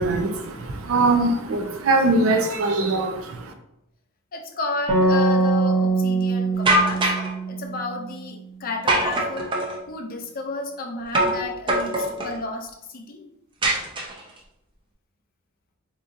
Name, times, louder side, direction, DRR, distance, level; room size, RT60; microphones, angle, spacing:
voice 1, 0.0-3.5, right 2 dB, 70° right, 4 dB, 0.5 m, -22 dB
voice 2, 4.3-7.1 7.5-9.5 9.9-13.2, left 2 dB, 40° left, 4 dB, 0.4 m, -32 dB
sound 1, 4.9-8.4, right 3 dB, 50° right, 0.9 m, -22 dB
sound 2, 6.7-7.3 8.9-9.8 11.1-11.4 11.7-12.4 13.6-14.4, right 1 dB, 25° right, 0.5 m, -22 dB
3.7 x 2.8 x 2.6 m, 0.84 s
head